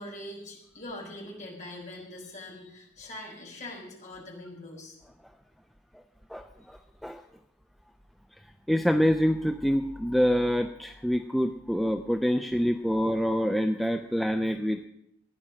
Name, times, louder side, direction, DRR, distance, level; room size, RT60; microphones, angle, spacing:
voice 1, 0.0-5.0, left 1 dB, 35° left, -2 dB, 4.5 m, -42 dB
voice 2, 6.3-7.2 8.7-14.9, equal, ahead, 5 dB, 0.4 m, -26 dB
15.0 x 10.0 x 6.3 m, 0.77 s
head